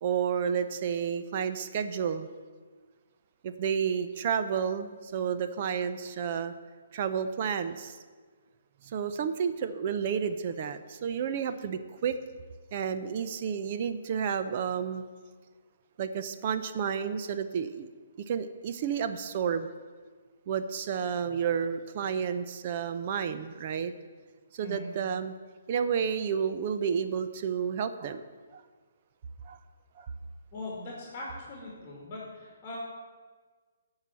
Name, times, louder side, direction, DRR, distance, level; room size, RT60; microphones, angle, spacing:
voice 1, 0.0-2.3 3.4-6.5 6.9-8.0 8.8-12.1 12.7-15.0 16.0-17.9 18.3-19.7 20.5-23.9 24.5-25.3 25.7-28.2 28.5-28.6 29.4-29.6 30.0-30.1, right 7 dB, 40° right, 10 dB, 0.6 m, -31 dB
voice 2, 30.5-32.8, left 2 dB, 20° left, -4 dB, 2.5 m, -40 dB
12.5 x 4.8 x 7.5 m, 1.5 s
hypercardioid pair, 160°, 0 cm